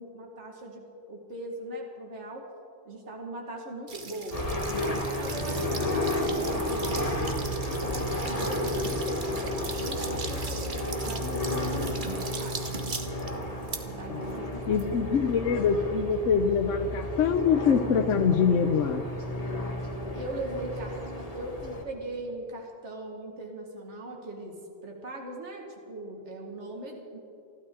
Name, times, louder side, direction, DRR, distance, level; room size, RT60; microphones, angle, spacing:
voice 1, 0.0-2.4 2.9-4.5 5.0-10.7 11.0-12.9 13.8-14.9 20.1-27.2, right 1 dB, 70° right, 0 dB, 2.1 m, -40 dB
sound 1, 3.9-15.5, right 4 dB, 45° right, 1.2 m, -40 dB
sound 2, 4.3-21.8, left 1 dB, 30° left, 1.6 m, -32 dB
voice 2, 14.7-19.0, left 6 dB, 80° left, 7 dB, 1.1 m, -24 dB
28.5 x 12.5 x 3.8 m, 2.6 s
omnidirectional pair, 1.2 m